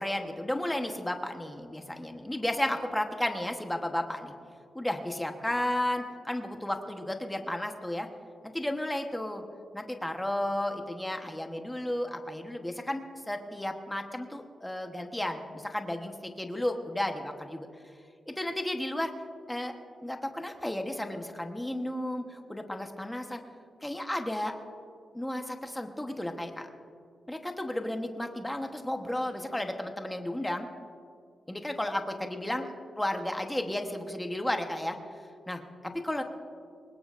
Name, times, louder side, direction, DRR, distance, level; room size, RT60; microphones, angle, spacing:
voice 1, 0.0-4.3 4.7-8.1 8.4-9.4 9.7-17.7 18.3-19.1 19.5-19.7 20.0-23.4 23.8-24.5 25.1-26.7 27.3-30.7 31.5-32.7 33.0-35.0 35.5-36.2, left 1 dB, 5° left, 4 dB, 1.1 m, -33 dB
23.5 x 20.0 x 2.5 m, 2.4 s
wide cardioid pair, 170°, 0 cm